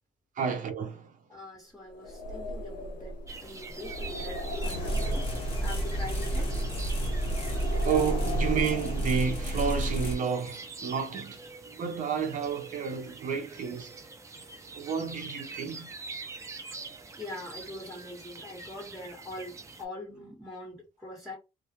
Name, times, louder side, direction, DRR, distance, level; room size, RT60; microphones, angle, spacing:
voice 1, 0.4-1.1 7.8-13.9 14.7-15.9, right 6 dB, 50° right, 0.7 m, -31 dB
voice 2, 1.3-5.3 5.6-6.5 17.2-21.3, left 1 dB, ahead, 1.3 m, -43 dB
sound 1, 1.9-9.5, equal, 55° left, 0.7 m, -37 dB
sound 2, 3.3-19.9, right 3 dB, 20° right, 0.5 m, -45 dB
sound 3, 4.6-10.1, right 1 dB, 30° left, 0.9 m, -30 dB
2.3 x 2.2 x 2.8 m
cardioid pair, 110°, 17 cm